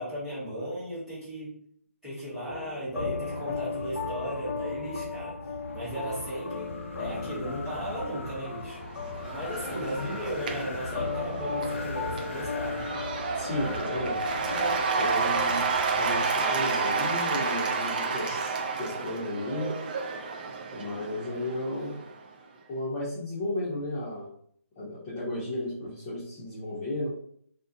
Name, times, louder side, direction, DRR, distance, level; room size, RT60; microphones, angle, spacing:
voice 1, 0.0-1.5 2.0-5.4 5.7-8.8 9.3-12.9, equal, 5° right, -13 dB, 1.2 m, -36 dB
sound 1, 2.5-14.7, left 4 dB, 85° left, 0.8 m, -36 dB
Wind, 2.9-16.5, left 2 dB, 55° left, 0.5 m, -42 dB
Cheering / Applause / Crowd, 8.7-22.2, right 4 dB, 35° right, 0.3 m, -31 dB
voice 2, 13.3-14.2 15.0-15.6 15.9-19.8 20.7-22.0 22.7-24.3 24.8-27.1, left 1 dB, 20° left, -10 dB, 0.7 m, -33 dB
2.4 x 2.1 x 2.6 m, 0.62 s
hypercardioid pair, 160°, 8 cm